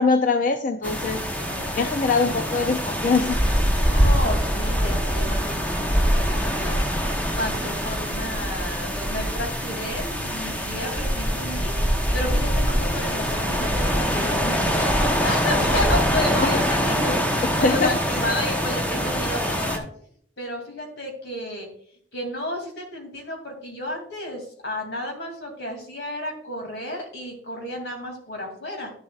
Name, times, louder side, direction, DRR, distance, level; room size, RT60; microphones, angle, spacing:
voice 1, 0.0-3.4 16.4-16.6 17.6-18.2, left 4 dB, 50° left, 7 dB, 0.5 m, -23 dB
sound 1, 0.8-19.8, equal, 10° left, 1.0 m, -24 dB
voice 2, 1.5-1.8 3.8-6.9 7.4-11.7 12.1-19.8 20.4-21.7 22.1-28.9, left 1 dB, 80° left, 3 dB, 2.8 m, -32 dB
11.0 x 7.2 x 2.4 m, 0.64 s
head